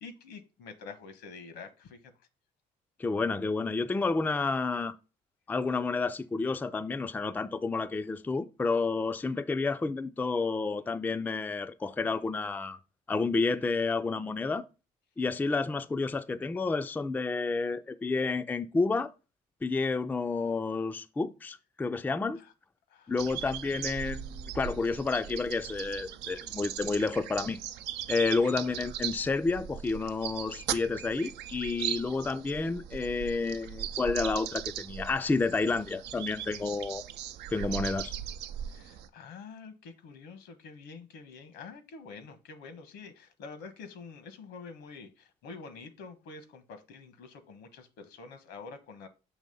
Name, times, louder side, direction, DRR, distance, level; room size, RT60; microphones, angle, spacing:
voice 1, 0.0-2.1 22.4-22.5 22.9-23.5 28.4-28.5 38.6-49.1, left 4 dB, 80° left, 1.2 m, -47 dB
voice 2, 3.0-5.0 5.5-12.8 13.1-14.7 15.2-19.1 19.6-22.4 23.1-27.6 28.1-37.0 37.5-38.1, left 3 dB, 10° left, 0.3 m, -30 dB
sound 1, 23.2-39.1, right 10 dB, 80° right, 0.5 m, -39 dB
6.3 x 3.0 x 5.3 m
cardioid pair, 110°, 17 cm